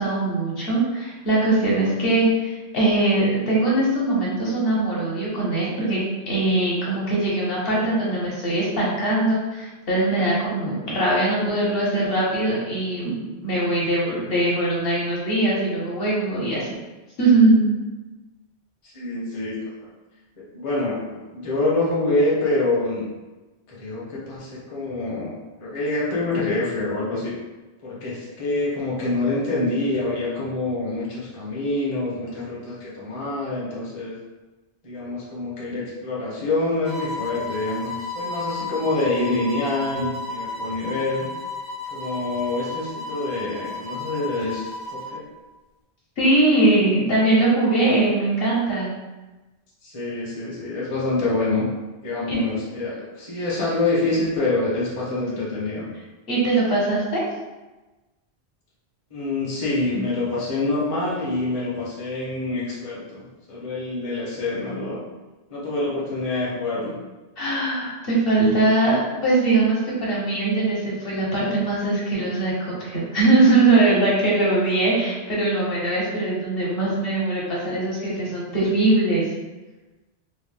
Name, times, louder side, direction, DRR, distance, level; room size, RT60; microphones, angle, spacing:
voice 1, 0.0-6.0 6.3-16.8 17.2-17.6 46.2-48.9 52.3-52.4 56.3-57.2 67.4-79.3, right 2 dB, 65° left, -5 dB, 1.0 m, -21 dB
voice 2, 18.8-19.9 20.4-23.1 23.7-27.4 27.8-34.2 34.8-41.3 41.9-45.3 49.8-51.7 52.0-55.8 59.1-65.0 65.5-67.0, left 2 dB, 35° left, -6 dB, 0.6 m, -26 dB
sound 1, 36.8-45.2, left 3 dB, 55° right, 0.5 m, -33 dB
2.8 x 2.0 x 3.2 m, 1.2 s
omnidirectional pair, 1.1 m